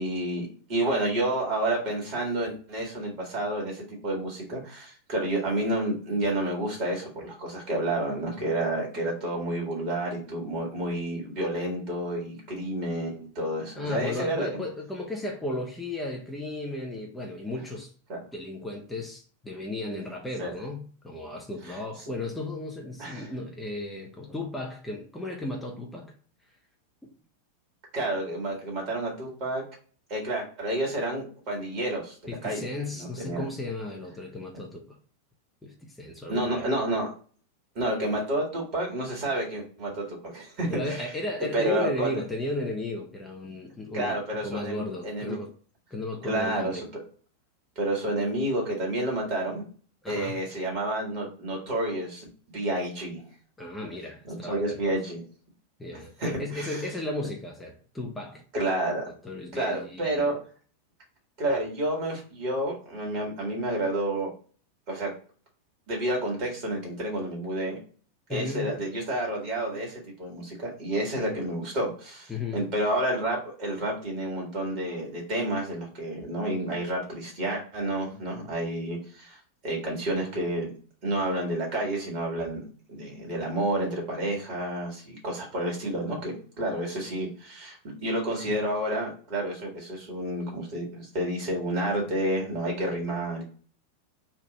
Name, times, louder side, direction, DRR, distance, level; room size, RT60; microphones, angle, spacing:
voice 1, 0.0-14.6 18.1-18.2 20.4-20.6 21.7-21.8 23.0-23.3 27.9-29.6 30.1-32.7 33.0-33.5 36.3-37.1 37.8-41.1 41.5-42.2 43.9-45.4 46.2-47.0 47.8-49.6 50.1-52.3 52.5-53.2 54.2-55.2 56.2-56.8 58.5-59.1 59.5-60.4 61.4-64.3 64.9-65.1 65.9-67.8 68.3-79.4 79.6-80.7 81.0-93.4, right 1 dB, 45° right, 1.8 m, -30 dB
voice 2, 13.8-17.9 18.3-26.1 32.3-35.0 35.6-36.7 40.7-45.5 45.9-46.8 50.0-50.4 53.6-54.9 55.8-58.4 59.2-60.3 68.3-68.7 72.3-72.6 88.5-88.6, left 1 dB, 10° left, 0.7 m, -35 dB
3.4 x 2.5 x 3.9 m
figure-of-eight pair, 90°, 0 cm